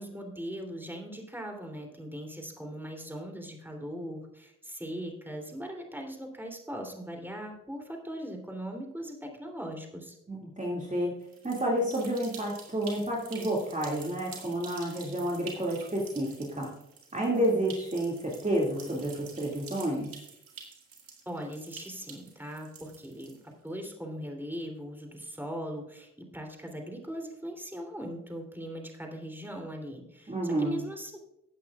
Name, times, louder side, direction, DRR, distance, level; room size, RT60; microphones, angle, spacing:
voice 1, 0.0-10.2 21.2-23.4 23.6-31.2, equal, 5° right, 2 dB, 3.2 m, -39 dB
voice 2, 10.3-11.1 11.4-16.7 17.1-20.1 30.3-30.8, right 1 dB, 20° right, -3 dB, 2.3 m, -30 dB
sound 1, 11.2-23.7, right 5 dB, 85° right, 2.1 m, -48 dB
17.0 x 8.6 x 2.4 m, 0.81 s
supercardioid pair, 40°, 34 cm